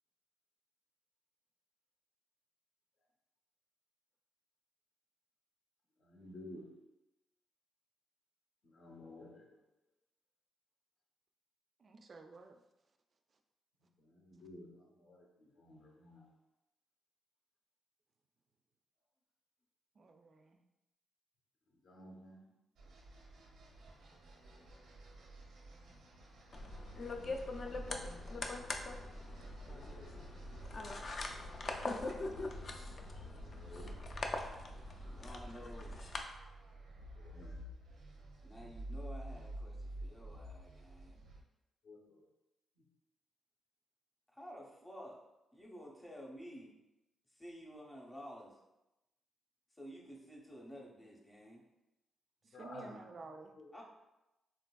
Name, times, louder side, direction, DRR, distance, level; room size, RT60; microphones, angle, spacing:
voice 1, 6.0-6.7 8.6-9.6 14.0-16.3 21.7-22.5 26.9-28.5 29.0-29.2 33.5-34.0 36.9-37.6 41.8-42.3 42.8-42.9 52.5-53.1 53.6-53.7, left 1 dB, 60° left, 0 dB, 0.7 m, -54 dB
voice 2, 11.8-12.6 20.0-20.6 25.7-26.0 52.4-53.5, right 3 dB, 40° right, 6 dB, 0.3 m, -53 dB
sound 1, 22.8-41.4, right 1 dB, 90° right, 0.5 m, -51 dB
sound 2, 26.5-36.2, left 2 dB, 45° left, 0.3 m, -42 dB
voice 3, 31.9-32.5 33.9-34.1 35.0-36.0 38.4-41.2 44.3-45.2 45.5-46.7 47.3-48.6 49.7-51.6 53.7-53.8, equal, 10° left, -2 dB, 0.7 m, -52 dB
3.8 x 2.5 x 2.2 m, 0.94 s
cardioid pair, 120°, 0 cm